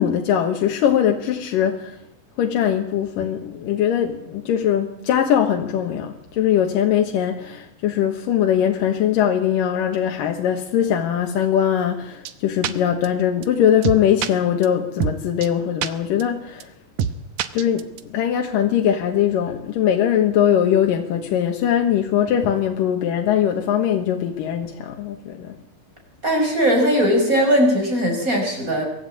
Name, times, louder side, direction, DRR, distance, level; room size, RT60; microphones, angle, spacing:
voice 1, 0.0-2.0 2.4-16.7 17.5-25.5, left 9 dB, 90° left, 3 dB, 3.0 m, -21 dB
sound 1, 12.3-12.4 12.6-12.7 13.0-13.1 13.4-13.5 13.8-14.3 14.6-14.7 15.0-15.1 15.4-15.5 15.8-15.9 16.2-16.3 16.6-16.7 17.0-17.1 17.4-18.0, right 8 dB, 75° right, 2.4 m, -23 dB
voice 2, 26.2-28.8, equal, 25° right, 2 dB, 5.5 m, -19 dB
23.0 x 14.0 x 8.5 m, 0.79 s
omnidirectional pair, 3.7 m